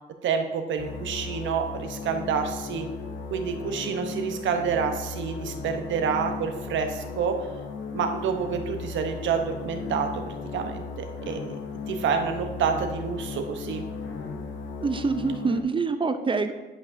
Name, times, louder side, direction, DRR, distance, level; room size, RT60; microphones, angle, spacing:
voice 1, 0.2-2.9 3.3-7.4 7.9-11.4 11.9-13.8, right 6 dB, 70° right, 6 dB, 0.8 m, -28 dB
sound 1, 0.8-15.6, left 4 dB, 70° left, 0.7 m, -36 dB
voice 2, 14.8-16.5, right 4 dB, 25° right, 9 dB, 0.5 m, -25 dB
11.0 x 5.3 x 2.6 m, 1.2 s
cardioid pair, 90°, 20 cm